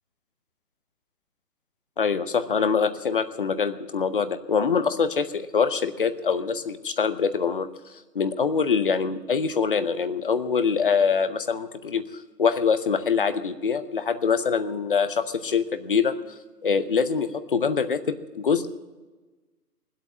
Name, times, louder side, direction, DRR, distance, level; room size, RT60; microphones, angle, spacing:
voice 1, 2.0-7.7 8.1-12.1 12.4-16.1 16.6-18.7, left 6 dB, 35° left, 12 dB, 0.7 m, -24 dB
19.5 x 8.3 x 7.4 m, 1.2 s
hypercardioid pair, 155°, 48 cm